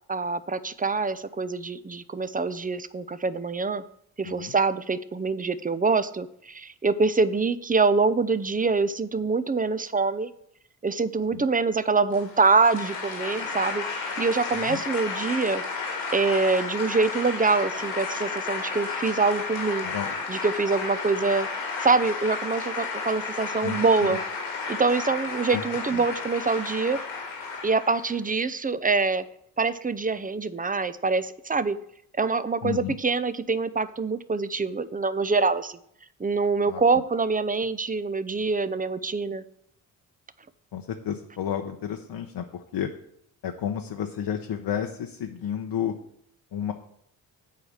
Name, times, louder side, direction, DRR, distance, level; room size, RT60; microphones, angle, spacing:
voice 1, 0.1-3.8 4.2-10.3 10.8-15.6 16.1-19.9 20.3-21.5 21.8-24.2 24.7-27.0 27.6-29.3 29.6-31.8 32.2-35.8 36.2-39.4, right 4 dB, 15° right, 14 dB, 0.6 m, -25 dB
sound 1, 12.1-28.2, left 4 dB, 85° left, 2.0 m, -32 dB
voice 2, 23.6-24.2 25.5-25.6 25.9-26.0 32.6-33.0 36.7-36.8 40.7-42.9 43.4-45.9 46.5-46.7, left 9 dB, 55° left, 4 dB, 0.9 m, -31 dB
8.4 x 4.8 x 7.3 m, 0.71 s
hypercardioid pair, 40°, 49 cm